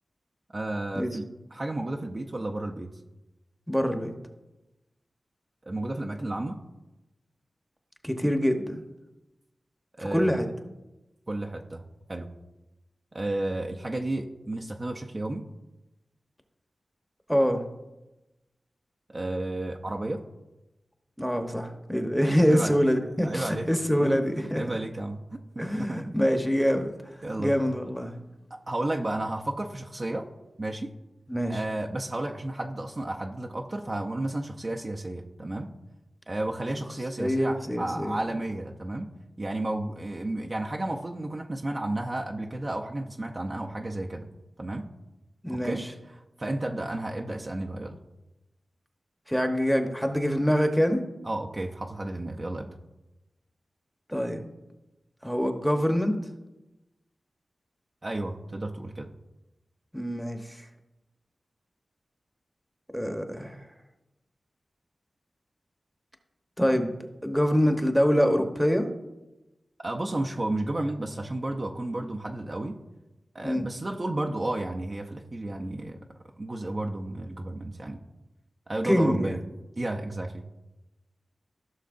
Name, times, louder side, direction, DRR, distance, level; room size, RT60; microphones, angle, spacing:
voice 1, 0.5-1.2 1.5-2.9 5.6-6.6 10.0-10.4 11.3-11.8 12.1-12.3 13.1-15.4 19.1-20.2 22.5-22.8 23.2-23.7 24.0-24.2 24.5-26.0 27.2-27.5 28.5-30.3 30.6-30.9 31.5-35.7 36.3-39.1 39.4-44.3 44.6-44.9 45.5-45.8 46.4-48.0 51.2-52.8 58.0-59.1 69.8-72.7 73.3-76.0 76.4-78.0 78.7-79.4 79.8-80.4, right 1 dB, 35° right, 1 dB, 0.6 m, -32 dB
voice 2, 3.7-4.1 8.0-8.8 10.0-10.5 17.3-17.7 21.2-24.6 25.6-28.2 31.3-31.6 37.2-38.2 45.4-45.9 49.3-51.0 54.1-54.5 55.2-56.2 59.9-60.7 62.9-63.6 66.6-67.0 67.2-68.9 73.4-73.6 78.8-79.4, equal, ahead, 5 dB, 1.0 m, -25 dB
15.5 x 6.3 x 2.6 m, 1.0 s
wide cardioid pair, 80°, 0 cm